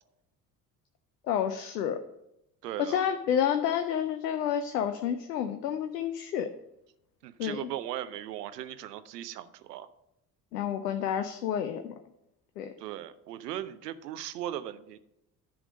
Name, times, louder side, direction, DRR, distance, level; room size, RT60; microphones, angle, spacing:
voice 1, 1.3-2.0 2.8-6.5 7.4-7.7 10.5-11.9 12.6-12.7, left 9 dB, 85° left, 9 dB, 0.5 m, -29 dB
voice 2, 2.6-3.1 7.2-9.9 12.8-15.0, right 12 dB, 85° right, 13 dB, 0.6 m, -38 dB
10.0 x 3.6 x 6.3 m, 0.85 s
figure-of-eight pair, 55°, 47 cm